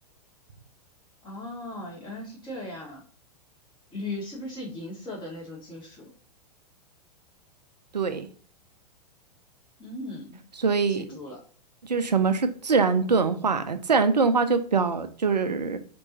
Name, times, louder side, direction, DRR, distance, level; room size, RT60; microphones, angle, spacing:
voice 1, 1.2-3.0 3.9-6.1 9.8-10.5 10.9-11.4 13.6-13.7, left 1 dB, 20° left, 1.6 m, -38 dB
voice 2, 7.9-8.3 10.6-11.0 11.8-15.8, right 4 dB, 80° right, 0.4 m, -23 dB
4.5 x 3.0 x 2.7 m
figure-of-eight pair, 100°, 21 cm